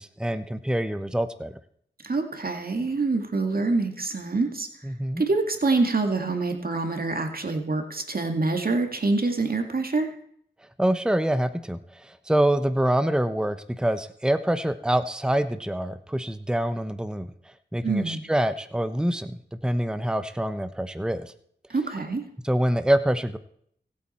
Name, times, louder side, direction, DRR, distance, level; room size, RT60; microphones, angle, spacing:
voice 1, 0.0-1.5 4.8-5.2 10.8-17.3 17.7-21.3 22.4-23.4, right 1 dB, 5° right, 11 dB, 0.9 m, -25 dB
voice 2, 2.0-4.7 5.2-10.1 17.8-18.2 21.7-22.2, right 3 dB, 55° right, 5 dB, 2.1 m, -26 dB
24.5 x 8.6 x 4.3 m, 0.66 s
cardioid pair, 50°, 18 cm